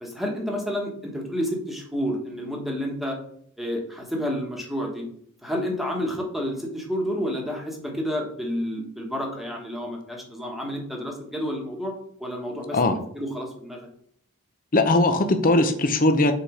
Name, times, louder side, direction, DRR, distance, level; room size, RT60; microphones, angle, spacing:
voice 1, 0.0-3.2 3.6-5.0 5.4-11.9 12.2-12.8 13.1-13.9, equal, ahead, -1 dB, 1.3 m, -30 dB
voice 2, 14.7-16.3, left 2 dB, 40° left, 6 dB, 0.8 m, -19 dB
5.0 x 4.4 x 5.0 m, 0.64 s
head